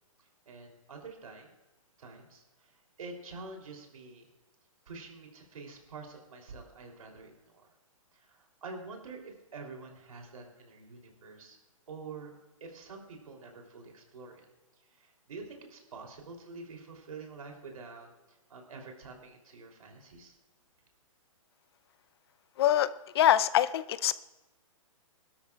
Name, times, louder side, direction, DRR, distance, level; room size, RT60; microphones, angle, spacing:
voice 1, 0.2-1.5 2.0-4.3 4.8-7.7 8.1-11.6 11.9-12.3 12.6-14.5 14.8-20.4, right 4 dB, 85° right, 1 dB, 3.3 m, -47 dB
voice 2, 22.6-22.9 23.1-24.1, left 11 dB, 45° left, 14 dB, 0.6 m, -24 dB
21.5 x 12.5 x 2.4 m, 1.1 s
hypercardioid pair, 155°, 18 cm